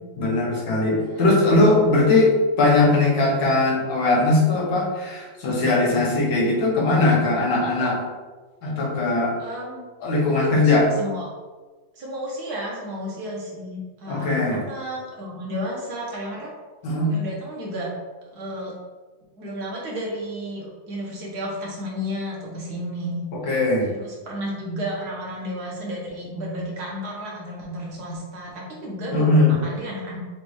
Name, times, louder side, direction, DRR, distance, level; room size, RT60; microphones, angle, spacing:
voice 1, 0.2-8.0 8.6-9.4 10.0-10.8 14.1-14.6 16.8-17.1 23.4-23.9 29.1-29.5, left 2 dB, 85° left, -3 dB, 1.9 m, -20 dB
voice 2, 1.0-1.3 7.8-8.1 9.4-9.8 10.4-11.3 11.9-16.5 17.1-17.9 18.3-18.7 19.4-23.2 23.9-30.2, equal, 60° right, -3 dB, 1.6 m, -32 dB
6.5 x 2.6 x 3.1 m, 1.3 s
omnidirectional pair, 2.1 m